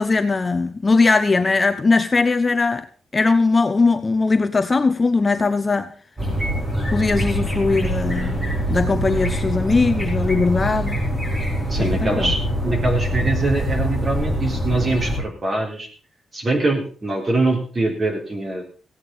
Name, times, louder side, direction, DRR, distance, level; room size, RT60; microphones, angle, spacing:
voice 1, 0.0-2.9 3.1-5.9 6.9-11.0 11.8-12.3, left 3 dB, 25° left, 9 dB, 0.8 m, -19 dB
sound 1, 6.2-15.2, equal, 10° right, 5.1 m, -24 dB
voice 2, 11.7-15.9 16.3-18.6, right 2 dB, 30° right, 1 dB, 3.7 m, -23 dB
16.0 x 9.1 x 5.4 m, 0.41 s
wide cardioid pair, 150°, 0 cm